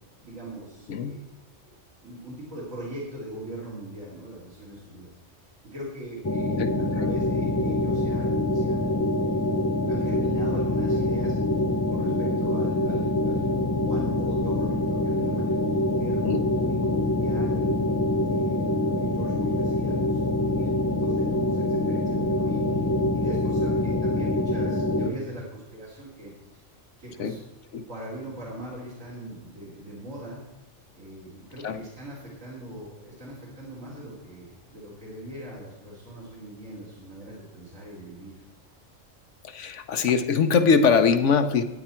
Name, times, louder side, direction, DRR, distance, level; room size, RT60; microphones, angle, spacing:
voice 1, 0.2-1.2 2.0-6.6 6.9-9.5 9.9-11.4 11.9-17.8 18.3-26.6 27.0-27.4 27.9-30.4 30.9-38.4, right 1 dB, 80° right, -6 dB, 3.3 m, -40 dB
voice 2, 0.9-1.2 6.6-6.7 7.0-7.1 16.2-16.4 27.2-27.4 27.7-27.9 31.6-31.8 39.4-41.6, left 5 dB, 70° left, 10 dB, 1.0 m, -22 dB
sound 1, 6.2-25.1, left 1 dB, 25° left, 0.4 m, -25 dB
14.0 x 9.3 x 4.4 m, 1.1 s
omnidirectional pair, 1.3 m